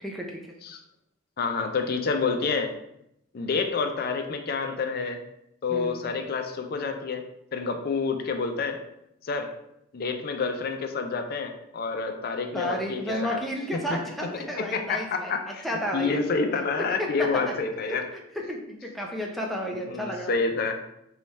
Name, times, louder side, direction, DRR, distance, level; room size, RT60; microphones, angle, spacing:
voice 1, 0.0-0.4 5.7-6.0 12.5-16.2 17.0-17.1 17.5-17.6 17.9-18.2 18.5-20.4, equal, ahead, -1 dB, 0.5 m, -32 dB
voice 2, 1.4-2.7 3.3-5.2 5.6-7.2 7.5-8.8 9.2-9.5 9.9-13.4 13.7-14.3 14.6-15.6 15.9-18.0 19.7-20.8, left 4 dB, 50° left, 5 dB, 0.4 m, -28 dB
3.2 x 2.3 x 4.0 m, 0.80 s
head